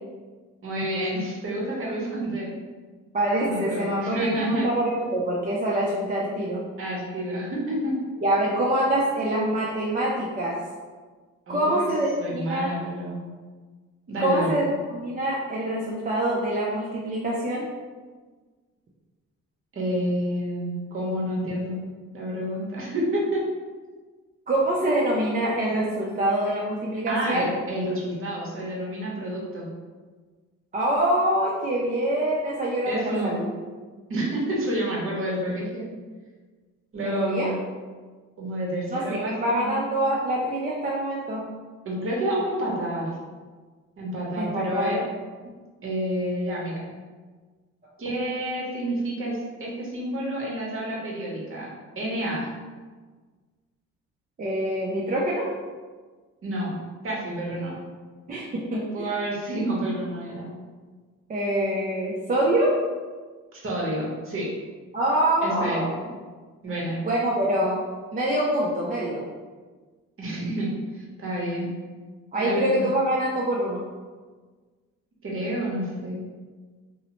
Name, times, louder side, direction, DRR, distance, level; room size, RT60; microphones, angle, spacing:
voice 1, 0.6-2.5 3.4-4.7 6.8-7.9 11.5-11.9 12.2-13.2 14.1-14.5 19.7-21.8 22.1-23.4 27.1-29.7 32.8-33.4 34.1-35.9 36.9-37.5 38.4-39.8 41.8-43.1 44.0-45.0 45.8-46.8 48.0-51.7 52.0-52.5 56.4-56.7 57.0-57.7 58.9-60.5 63.5-64.5 65.4-65.8 66.6-67.0 70.2-71.7 72.3-72.9 75.2-76.2, right 1 dB, 45° right, -3 dB, 0.9 m, -29 dB
voice 2, 3.1-6.6 8.2-10.6 11.5-12.7 14.2-17.7 24.5-27.5 30.7-33.5 37.0-37.5 38.9-41.4 44.4-44.9 54.4-55.5 58.3-58.8 61.3-62.7 64.9-65.9 67.0-67.8 68.1-69.2 72.3-73.8, right 1 dB, 30° right, -5 dB, 0.4 m, -25 dB
2.7 x 2.1 x 2.8 m, 1.4 s
cardioid pair, 90°, 30 cm